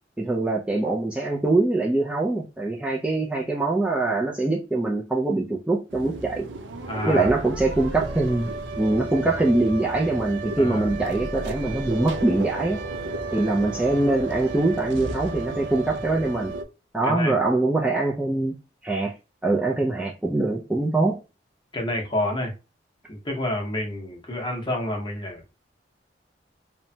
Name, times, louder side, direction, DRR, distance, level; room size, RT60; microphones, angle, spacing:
voice 1, 0.2-6.5 7.1-8.5 8.8-12.8 13.3-16.5 16.9-18.5 18.8-19.1 19.4-21.2, right 2 dB, 5° right, 0.3 m, -23 dB
sound 1, 5.9-16.6, right 2 dB, 85° right, 0.4 m, -33 dB
voice 2, 6.9-7.3 10.6-10.9 17.0-17.4 19.9-20.0 21.7-22.5 23.1-25.5, left 1 dB, 25° left, 0.8 m, -29 dB
2.9 x 2.1 x 2.6 m
head